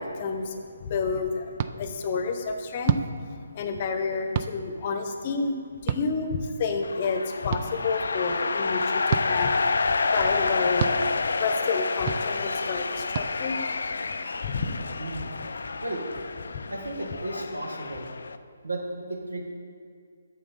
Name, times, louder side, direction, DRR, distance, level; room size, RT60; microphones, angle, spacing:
voice 1, 0.0-3.0 3.3-13.6 14.1-14.2 14.4-15.0 16.5-16.6, left 4 dB, 40° left, 6 dB, 0.8 m, -30 dB
sound 1, 1.6-1.7 2.8-3.1 4.3-4.5 5.9-6.0 7.5-7.6 9.1-9.3 10.8-11.0 12.1-12.2 13.1-13.3, right 9 dB, 40° right, 0.3 m, -26 dB
sound 2, 6.8-18.4, left 4 dB, 70° left, 0.3 m, -29 dB
voice 2, 15.0-15.3 15.8-16.0 16.7-18.1 18.6-19.5, right 2 dB, 90° right, 1 dB, 1.5 m, -34 dB
9.2 x 6.6 x 4.2 m, 2.2 s
figure-of-eight pair, 150°, 0 cm